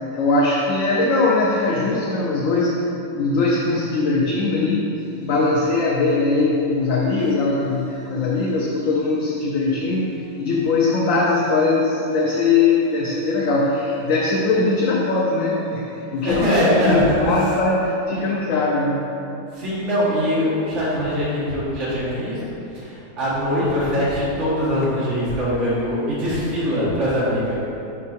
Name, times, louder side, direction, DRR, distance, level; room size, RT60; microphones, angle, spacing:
voice 1, 0.1-2.8 3.1-19.1, left 3 dB, 75° left, -3 dB, 1.0 m, -21 dB
sound 1, 5.0-16.3, left 1 dB, 15° right, 1.5 m, -41 dB
voice 2, 16.2-17.0 19.5-27.6, equal, 60° right, -9 dB, 1.8 m, -22 dB
5.5 x 5.3 x 4.1 m, 2.9 s
omnidirectional pair, 1.4 m